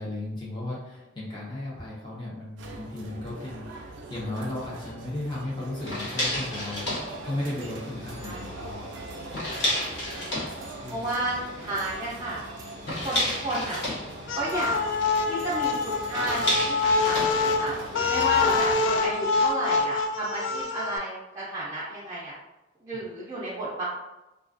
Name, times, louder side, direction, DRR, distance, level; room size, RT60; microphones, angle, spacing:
voice 1, 0.0-8.8 10.8-11.1 12.8-13.0 22.9-23.0, left 1 dB, 25° left, -6 dB, 0.7 m, -35 dB
sound 1, 2.6-18.7, right 2 dB, 85° right, 0.4 m, -42 dB
sound 2, 5.8-19.4, left 1 dB, 70° left, 0.9 m, -34 dB
voice 2, 8.2-8.6 10.0-10.4 10.9-12.4 12.9-13.8 14.3-14.8 15.3-17.7 18.1-22.3 22.8-23.9, right 1 dB, 20° right, -8 dB, 0.4 m, -32 dB
sound 3, 14.3-21.0, left 4 dB, 85° left, 0.3 m, -25 dB
2.4 x 2.2 x 2.4 m, 0.99 s
head